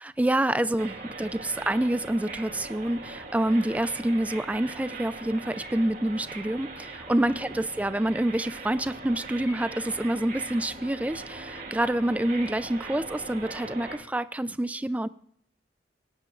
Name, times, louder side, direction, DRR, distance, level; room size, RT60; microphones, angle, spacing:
voice 1, 0.2-15.1, right 1 dB, 10° right, 14 dB, 0.3 m, -27 dB
sound 1, 0.8-14.0, right 3 dB, 45° right, 2.3 m, -40 dB
17.5 x 10.5 x 2.4 m, 0.65 s
head